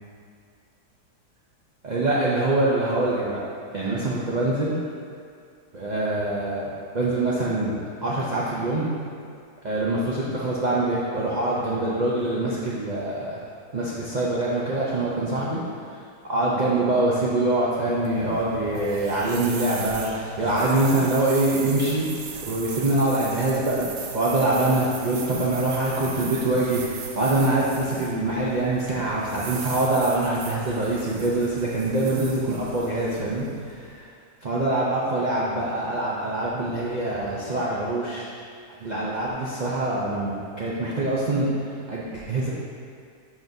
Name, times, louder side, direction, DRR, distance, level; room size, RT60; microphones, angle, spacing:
voice 1, 1.8-3.4 3.7-4.7 5.7-7.7 8.0-8.9 9.6-13.4 13.7-15.6 16.2-22.1 22.4-23.9 24.1-33.5 34.4-38.3 38.8-41.5 41.9-42.5, right 2 dB, 70° right, -6 dB, 0.4 m, -24 dB
sound 1, 17.8-34.0, right 6 dB, 90° right, 1.3 m, -38 dB
10.5 x 4.1 x 2.7 m, 2.3 s
omnidirectional pair, 1.8 m